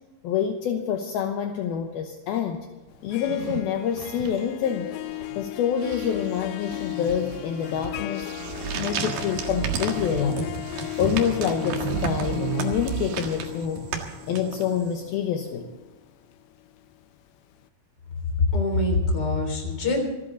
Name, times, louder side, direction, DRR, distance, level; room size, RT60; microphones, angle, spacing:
voice 1, 0.2-2.7 3.0-4.9 5.4-8.3 8.7-10.5 11.0-13.8 14.3-15.7, left 8 dB, 75° left, 4 dB, 2.7 m, -27 dB
Harp, 2.9-16.9, left 17 dB, 90° left, 2.8 m, -36 dB
sound 1, 3.1-5.5 5.8-13.7, right 12 dB, 80° right, 2.4 m, -35 dB
sound 2, 8.4-14.9, right 6 dB, 60° right, 3.1 m, -33 dB
voice 2, 18.4-20.0, left 2 dB, 25° left, 2 dB, 3.7 m, -23 dB
27.0 x 11.5 x 3.9 m, 1.2 s
omnidirectional pair, 4.8 m